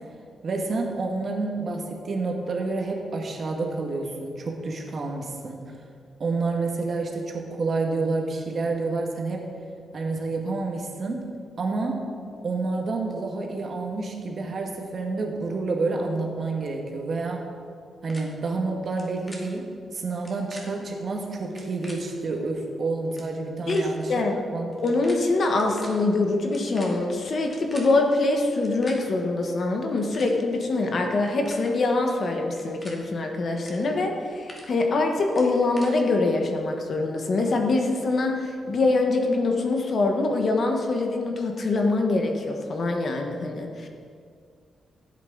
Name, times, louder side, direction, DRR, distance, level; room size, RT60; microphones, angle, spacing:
voice 1, 0.4-5.6 6.2-9.5 9.9-11.3 11.6-12.0 12.4-17.5 18.0-24.1 24.5-24.8, right 3 dB, 45° right, 1 dB, 1.5 m, -29 dB
sound 1, 18.1-18.2 18.8-19.0 19.3-19.4 20.1-20.6 21.4-21.9 22.7-22.8 23.0-23.3 23.7-23.8 24.7-25.1 25.4-25.9 26.4-27.9 28.5-28.9 29.8-30.3 31.1-31.6 32.5-32.9 33.5-33.7 34.1-34.6 35.3-35.9, left 1 dB, 20° left, 2.0 m, -44 dB
voice 2, 23.7-24.4 24.8-43.9, left 2 dB, 50° left, 3 dB, 1.3 m, -24 dB
15.0 x 8.5 x 4.0 m, 2.3 s
wide cardioid pair, 135°, 0 cm